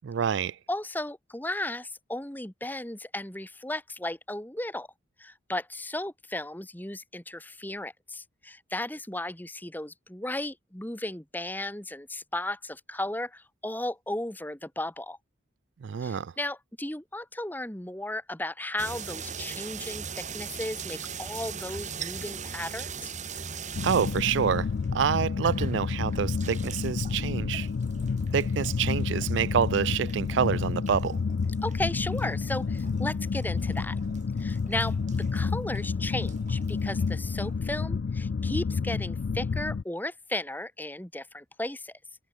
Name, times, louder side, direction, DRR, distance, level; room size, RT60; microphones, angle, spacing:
voice 1, 0.0-0.6 15.8-16.3 23.8-27.7 28.3-31.2, right 7 dB, 65° right, 0.4 m, -27 dB
voice 2, 0.7-4.9 5.2-15.2 16.0-23.1 31.6-34.0 34.4-41.9, left 1 dB, 10° left, 1.4 m, -35 dB
sound 1, 18.8-37.6, right 6 dB, 40° right, 3.7 m, -42 dB
sound 2, 23.7-39.8, left 5 dB, 55° left, 0.4 m, -30 dB
head